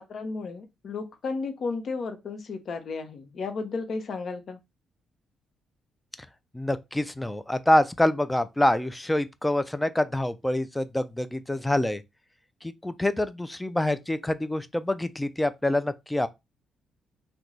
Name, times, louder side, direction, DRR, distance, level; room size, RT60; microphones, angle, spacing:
voice 1, 0.0-4.6, left 4 dB, 55° left, 0.8 m, -33 dB
voice 2, 6.5-12.0 12.6-16.3, left 1 dB, 10° left, 0.3 m, -26 dB
3.0 x 2.2 x 3.8 m
cardioid pair, 90°, 0 cm